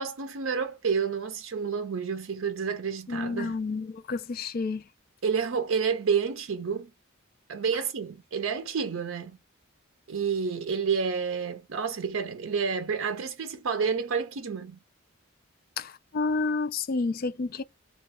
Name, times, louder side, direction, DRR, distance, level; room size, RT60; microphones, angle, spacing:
voice 1, 0.0-3.5 5.2-6.9 7.5-9.4 10.1-14.8, right 6 dB, 70° right, 0.5 m, -29 dB
voice 2, 3.1-4.8 15.8-17.6, left 3 dB, 45° left, 0.4 m, -30 dB
3.0 x 2.3 x 3.5 m
head